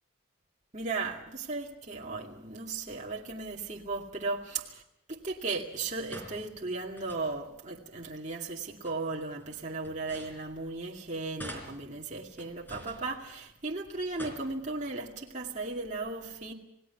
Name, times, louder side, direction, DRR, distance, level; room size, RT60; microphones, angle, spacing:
voice 1, 0.7-4.8 5.1-16.5, right 3 dB, 35° right, 2.3 m, -36 dB
sound 1, 5.7-7.6 8.6-11.0 11.4-13.6 14.0-15.0, equal, 10° left, 4.1 m, -48 dB
28.5 x 18.5 x 5.9 m
head